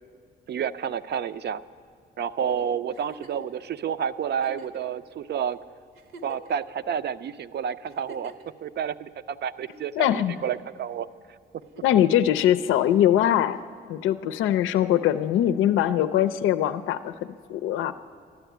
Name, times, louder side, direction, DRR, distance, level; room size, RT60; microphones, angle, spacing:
voice 1, 0.5-1.6 2.2-5.6 6.2-8.3 8.6-11.1, right 8 dB, 60° right, 13 dB, 0.6 m, -30 dB
Giggle, 2.9-3.5 4.3-4.8 5.5-5.6 5.9-6.7 7.9-8.5 9.7-10.3 11.6-12.1 13.6-13.7, right 3 dB, 85° right, 1.3 m, -47 dB
voice 2, 10.0-10.4 11.8-13.6 13.9-17.9, left 11 dB, 85° left, 12 dB, 0.5 m, -22 dB
12.5 x 12.0 x 9.2 m, 2.1 s
cardioid pair, 90°, 20 cm